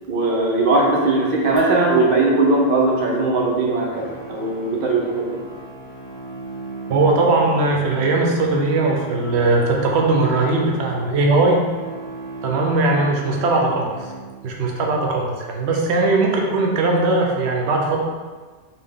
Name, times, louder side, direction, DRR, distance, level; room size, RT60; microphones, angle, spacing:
voice 1, 0.1-5.4, right 2 dB, 60° right, -2 dB, 0.8 m, -19 dB
sound 1, 1.6-4.8, right 4 dB, 50° left, 0.7 m, -37 dB
sound 2, 3.9-14.6, right 3 dB, 20° right, 1.5 m, -36 dB
voice 2, 6.9-11.6 12.4-14.1 14.4-18.0, right 2 dB, 90° right, 0 dB, 0.9 m, -19 dB
3.9 x 2.2 x 3.4 m, 1.4 s
omnidirectional pair, 1.1 m